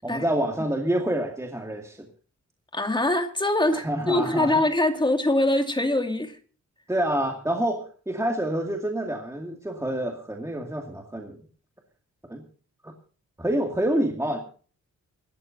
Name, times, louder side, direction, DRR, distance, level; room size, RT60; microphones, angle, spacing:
voice 1, 0.0-2.1 3.7-4.6 6.9-11.4 12.3-12.4 12.8-12.9 13.4-14.4, right 1 dB, 10° right, 2.2 m, -27 dB
voice 2, 2.7-6.4, left 1 dB, 15° left, 2.3 m, -23 dB
26.0 x 13.0 x 2.7 m
wide cardioid pair, 140°, 31 cm